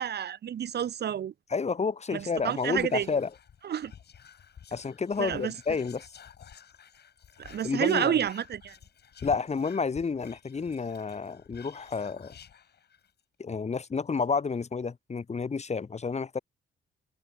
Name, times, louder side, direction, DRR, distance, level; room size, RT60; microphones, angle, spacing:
voice 1, 0.0-1.3 2.1-3.1 3.6-3.9 5.2-5.5 7.4-8.7, right 9 dB, 55° right, 1.4 m, -29 dB
voice 2, 1.5-3.3 4.7-6.1 7.6-8.2 9.2-12.3 13.4-16.4, left 5 dB, 35° left, 3.7 m, -30 dB
Whispering, 2.1-13.2 13.5-13.6 13.8-14.2, left 8 dB, 55° left, 7.6 m, -52 dB
cardioid pair, 90°, 20 cm